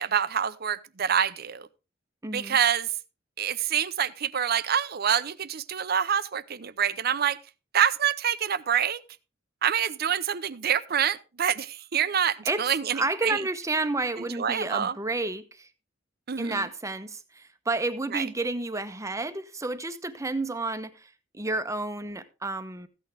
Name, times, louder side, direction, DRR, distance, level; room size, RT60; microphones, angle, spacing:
voice 1, 0.0-1.7 2.3-2.9 3.4-7.4 7.7-9.0 9.6-13.4 14.4-14.9 16.3-16.7 18.1-18.3, right 8 dB, 55° right, 0.6 m, -26 dB
voice 2, 2.2-2.6 12.4-12.7 12.9-15.7 16.4-22.9, right 2 dB, 15° right, 0.8 m, -31 dB
14.5 x 9.0 x 3.4 m
head